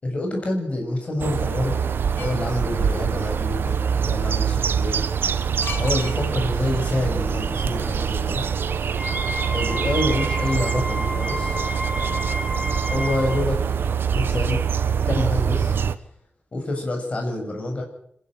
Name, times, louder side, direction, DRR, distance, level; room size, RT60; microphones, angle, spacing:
voice 1, 0.0-1.8 2.2-5.0 5.8-8.5 9.5-11.6 12.9-13.6 14.1-14.6 15.1-15.7 16.5-17.8, left 1 dB, 35° left, 1 dB, 7.0 m, -27 dB
sound 1, 1.2-15.9, right 7 dB, 80° right, 1.2 m, -24 dB
sound 2, 2.2-2.5 5.6-6.6 6.8-6.9, left 5 dB, 70° left, 2.9 m, -35 dB
Wind instrument woodwind instrument, 8.9-13.4, equal, 15° right, 2.6 m, -31 dB
25.5 x 12.0 x 9.2 m, 0.69 s
wide cardioid pair, 175°, 4 cm